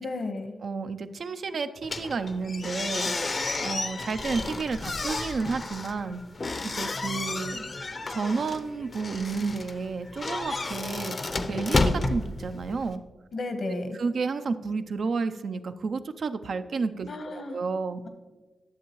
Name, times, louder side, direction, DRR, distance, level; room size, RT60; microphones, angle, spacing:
voice 1, 0.0-0.5 13.3-14.0 17.1-17.6, left 2 dB, 70° left, 7 dB, 1.2 m, -33 dB
voice 2, 0.6-3.1 3.6-6.2 6.7-7.7 8.1-11.2 11.5-13.0 13.9-18.0, right 4 dB, 70° right, 9 dB, 0.4 m, -31 dB
sound 1, 1.8-13.0, left 3 dB, 50° left, 0.6 m, -31 dB
10.5 x 7.0 x 3.1 m, 1.2 s
cardioid pair, 50°, 0 cm